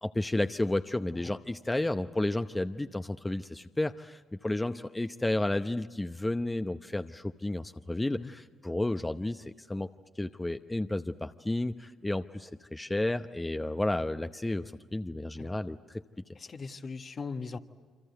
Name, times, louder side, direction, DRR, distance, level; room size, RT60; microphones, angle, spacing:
voice 1, 0.0-9.9 10.2-16.0, left 1 dB, 15° left, 9 dB, 0.8 m, -32 dB
voice 2, 16.3-17.6, left 4 dB, 45° left, 7 dB, 1.4 m, -39 dB
27.5 x 25.5 x 8.1 m, 1.4 s
hypercardioid pair, 50°, 0 cm